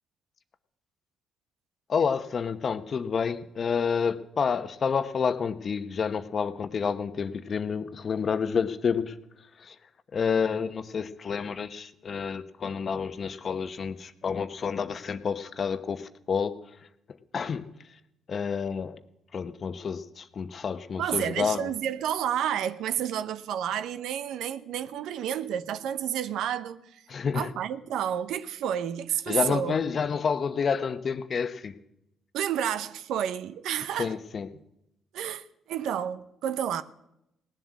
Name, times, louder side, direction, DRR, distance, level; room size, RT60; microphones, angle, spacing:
voice 1, 1.9-9.2 9.6-9.7 10.1-16.6 17.3-17.7 18.3-19.0 19.3-21.6 27.1-27.5 29.3-31.8 34.0-34.5, left 6 dB, 50° left, 1.0 m, -29 dB
voice 2, 21.0-27.0 27.3-29.8 32.3-34.2 35.1-36.8, right 9 dB, 75° right, 0.7 m, -30 dB
18.0 x 7.5 x 8.3 m
supercardioid pair, 55°, 0 cm